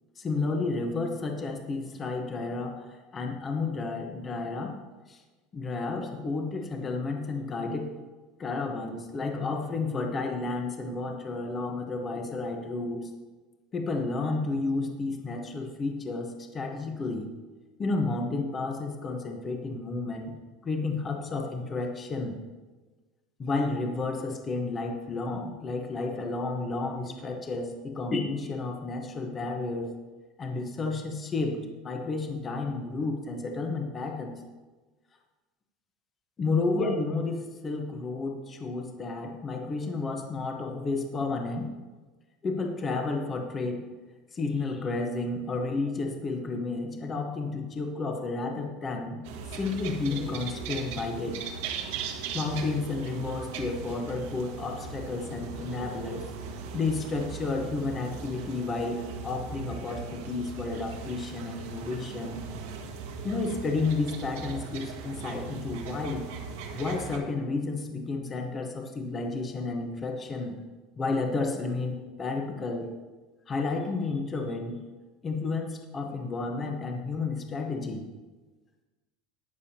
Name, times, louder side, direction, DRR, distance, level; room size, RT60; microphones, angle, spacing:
voice 1, 0.2-4.7 5.1-5.2 5.5-7.9 8.4-13.1 13.7-17.3 17.8-20.3 20.6-22.4 23.4-29.9 30.4-31.6 31.8-34.4 36.4-41.7 42.4-43.9 44.3-49.2 49.5-51.4 52.3-56.2 56.7-62.4 63.2-66.2 66.7-70.6 71.0-72.9 73.5-74.8 75.2-78.1, left 3 dB, 20° left, 3 dB, 1.0 m, -31 dB
sound 1, 49.2-67.2, right 5 dB, 80° right, 1.5 m, -39 dB
20.0 x 7.0 x 2.9 m, 1.3 s
cardioid pair, 170°, 0 cm